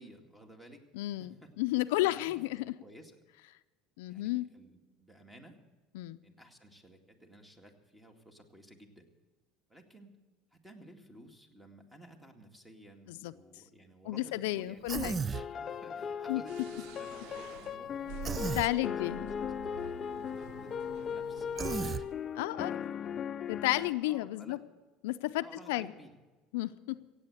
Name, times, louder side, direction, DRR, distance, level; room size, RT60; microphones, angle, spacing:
voice 1, 0.0-2.4 2.7-3.2 4.1-5.6 6.2-9.1 9.7-10.2 10.5-14.9 15.3-19.3 19.6-20.0 20.4-21.6 22.3-22.9 24.0-24.6 25.4-26.1, right 1 dB, 10° right, 4 dB, 2.1 m, -55 dB
voice 2, 0.9-2.7 4.0-4.5 5.9-6.2 13.1-13.3 14.1-15.2 16.3-16.4 18.6-19.3 22.4-22.8 23.5-24.6 25.0-25.9 26.5-27.0, left 18 dB, 85° left, 12 dB, 0.5 m, -32 dB
Human voice, 14.9-15.5 18.2-18.7 21.6-22.0, right 5 dB, 25° right, 0.4 m, -34 dB
sound 1, 15.3-23.9, left 7 dB, 35° left, 0.5 m, -38 dB
sound 2, 16.5-22.1, right 6 dB, 70° right, 0.6 m, -47 dB
16.5 x 8.4 x 7.9 m, 1.2 s
supercardioid pair, 110°, 0 cm